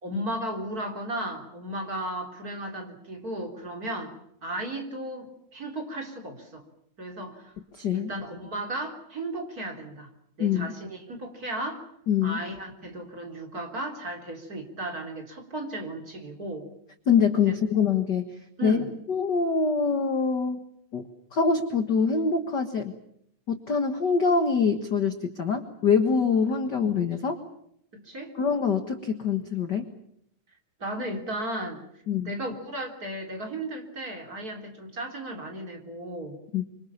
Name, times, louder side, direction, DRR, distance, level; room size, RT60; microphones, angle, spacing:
voice 1, 0.0-4.1 4.4-6.6 7.0-7.6 7.9-10.1 10.4-11.8 12.2-16.7 18.6-18.9 27.9-28.3 30.8-31.8 32.3-36.4, right 1 dB, 25° right, 3 dB, 3.8 m, -35 dB
voice 2, 7.7-8.1 10.4-10.7 12.1-12.4 17.1-18.8 19.1-20.6 20.9-21.1 21.3-23.0 23.5-27.4 28.3-29.9 32.1-32.3 36.5-36.6, left 5 dB, 45° left, 7 dB, 1.5 m, -24 dB
26.0 x 25.0 x 7.2 m, 0.71 s
omnidirectional pair, 3.7 m